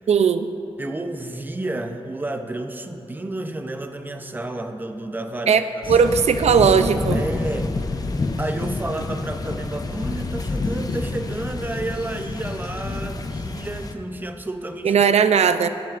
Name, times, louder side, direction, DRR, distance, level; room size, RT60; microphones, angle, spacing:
voice 1, 0.1-0.5 5.5-5.6 5.9-7.2 14.8-15.7, right 6 dB, 80° right, 11 dB, 0.4 m, -17 dB
voice 2, 0.8-6.1 7.1-7.8 8.4-15.0, right 2 dB, 15° right, 6 dB, 0.5 m, -31 dB
sound 1, 5.8-13.9, left 3 dB, 35° left, 0.5 m, -28 dB
21.5 x 7.5 x 2.5 m, 2.9 s
wide cardioid pair, 130°, 11 cm